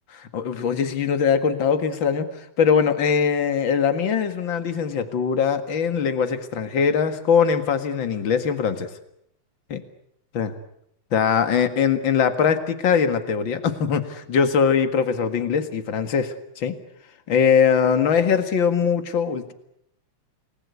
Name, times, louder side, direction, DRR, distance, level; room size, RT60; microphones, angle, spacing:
voice 1, 0.1-8.9 9.7-9.8 10.4-10.5 11.1-16.8 17.3-19.5, left 6 dB, 45° left, 9 dB, 2.2 m, -21 dB
28.5 x 20.0 x 8.3 m, 0.75 s
omnidirectional pair, 3.6 m